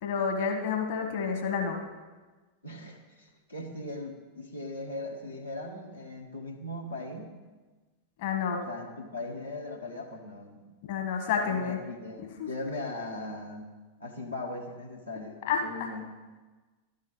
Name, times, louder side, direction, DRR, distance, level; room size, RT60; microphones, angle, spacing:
voice 1, 0.0-1.8 8.2-8.6 10.9-11.8 12.2-12.5 15.4-15.9, left 6 dB, 55° left, 3 dB, 1.4 m, -29 dB
voice 2, 2.6-7.3 8.7-10.7 11.4-13.7 14.0-16.1, left 2 dB, 85° left, -2 dB, 1.2 m, -39 dB
12.0 x 5.4 x 5.4 m, 1.3 s
figure-of-eight pair, 90°, 0 cm